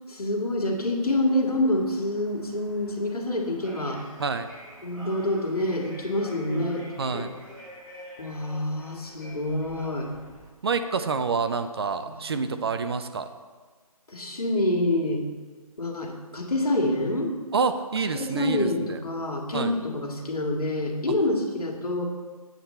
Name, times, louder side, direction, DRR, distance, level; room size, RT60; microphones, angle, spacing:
voice 1, 0.1-4.0 4.8-6.9 7.1-7.3 8.2-10.1 12.0-12.5 14.1-15.2 15.8-17.3 18.1-22.0, left 1 dB, 75° left, 1 dB, 1.7 m, -27 dB
sound 1, 1.0-10.5, equal, 5° right, 2.8 m, -47 dB
voice 2, 7.0-7.3 10.6-13.3 17.5-19.0 19.5-19.7, right 5 dB, 40° right, 9 dB, 0.5 m, -27 dB
8.2 x 7.4 x 4.2 m, 1.4 s
figure-of-eight pair, 150°, 19 cm